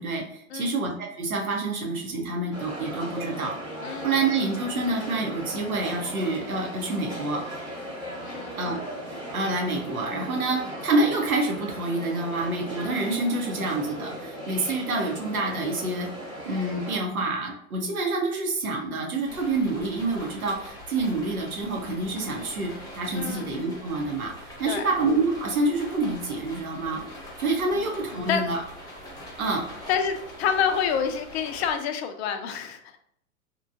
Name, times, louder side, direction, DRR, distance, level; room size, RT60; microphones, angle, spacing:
voice 1, 0.0-3.5 4.0-7.4 8.6-8.8 9.1-16.1 16.4-24.3 24.6-27.0 27.4-28.6 29.4-29.6, right 2 dB, 80° right, 0 dB, 1.0 m, -27 dB
sound 1, 2.5-17.0, equal, 10° right, 1.1 m, -37 dB
voice 2, 3.8-4.1 8.2-8.6 23.1-23.5 24.7-24.9 27.7-27.9 28.1-28.4 29.9-33.0, left 7 dB, 50° left, 7 dB, 0.5 m, -28 dB
sound 2, 19.3-31.7, equal, 10° left, 1.0 m, -43 dB
3.0 x 2.2 x 2.6 m, 0.69 s
hypercardioid pair, 105°, 43 cm